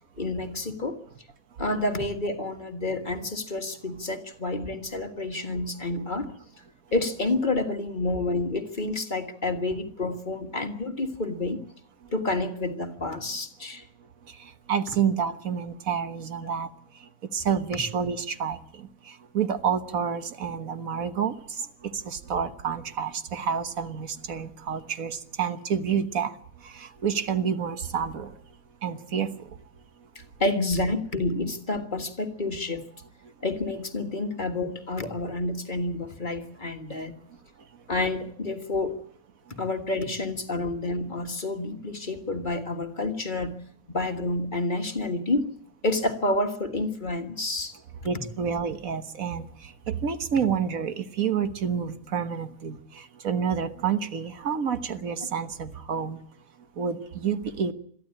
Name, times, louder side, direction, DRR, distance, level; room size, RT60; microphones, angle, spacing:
voice 1, 0.2-1.0 1.6-6.3 6.9-11.6 12.1-13.9 30.2-32.8 33.4-37.1 37.9-38.9 39.6-43.5 43.9-45.5 45.8-47.7 48.0-48.1, left 2 dB, 35° left, 6 dB, 1.7 m, -29 dB
voice 2, 14.7-16.7 17.3-18.6 19.3-21.3 22.1-26.3 26.8-28.3 28.8-29.3 48.1-49.4 49.9-52.8 53.2-56.2 56.8-57.7, right 7 dB, 90° right, 9 dB, 1.7 m, -28 dB
22.5 x 14.0 x 8.6 m, 0.65 s
omnidirectional pair, 1.4 m